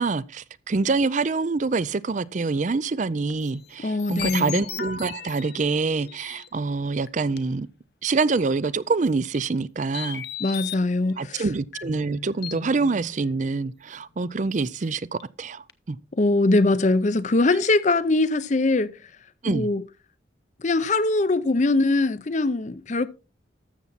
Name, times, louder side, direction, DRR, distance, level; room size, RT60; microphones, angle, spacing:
voice 1, 0.0-7.7 8.0-10.2 11.2-16.0 19.4-19.7, right 4 dB, 40° right, 0.4 m, -26 dB
sound 1, 3.3-6.5 7.1-7.2 7.4-7.5 8.4-8.7 9.2-9.4 9.9-10.9 11.7-13.7 14.0-14.1 14.7-14.8 15.2-15.4 15.7-15.8, left 8 dB, 55° left, 0.9 m, -37 dB
voice 2, 3.8-4.6 10.4-11.5 16.1-18.9 19.5-19.8 20.6-23.1, left 2 dB, 40° left, 0.6 m, -22 dB
13.0 x 7.1 x 4.1 m
head